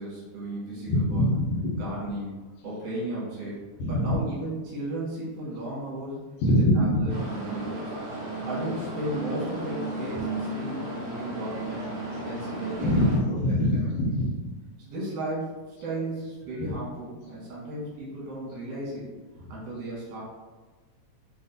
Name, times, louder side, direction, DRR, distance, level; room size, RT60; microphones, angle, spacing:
voice 1, 0.0-1.3 1.7-2.3 2.6-3.6 3.9-6.2 6.7-7.9 8.5-11.9 12.3-13.9 14.8-19.0 19.5-20.2, right 1 dB, 90° right, -8 dB, 2.9 m, -35 dB
voice 2, 0.9-1.8 3.8-4.2 6.4-7.2 12.8-13.1 13.4-14.4, equal, 75° left, -3 dB, 2.0 m, -23 dB
sound 1, 7.1-13.2, right 1 dB, 65° right, 1.4 m, -34 dB
6.3 x 2.3 x 2.5 m, 1.3 s
omnidirectional pair, 3.6 m